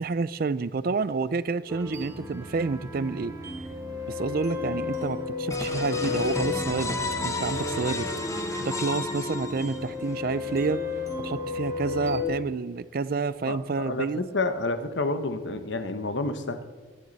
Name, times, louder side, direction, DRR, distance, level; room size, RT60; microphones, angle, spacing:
voice 1, 0.0-3.3 4.1-6.9 7.2-8.1 8.6-10.8 11.2-14.2, right 4 dB, 50° right, 17 dB, 0.4 m, -29 dB
sound 1, 1.7-12.2, left 4 dB, 15° right, 2.8 m, -33 dB
sound 2, 5.5-10.1, left 2 dB, 15° left, 1.0 m, -32 dB
voice 2, 13.5-16.6, left 2 dB, 65° left, 9 dB, 1.0 m, -29 dB
20.0 x 10.5 x 4.1 m, 1.3 s
head